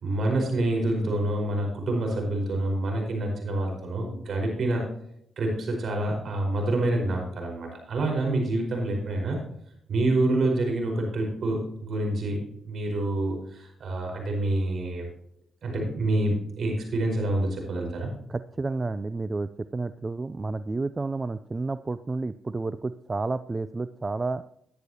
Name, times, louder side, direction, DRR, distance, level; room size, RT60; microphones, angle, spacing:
voice 1, 0.0-4.8 5.4-9.4 9.9-12.4 12.7-15.0 15.6-18.1, right 1 dB, 65° right, 2 dB, 4.9 m, -27 dB
voice 2, 18.3-24.4, right 3 dB, 30° right, 13 dB, 0.5 m, -31 dB
12.5 x 10.5 x 2.9 m, 0.72 s
supercardioid pair, 55°, 0 cm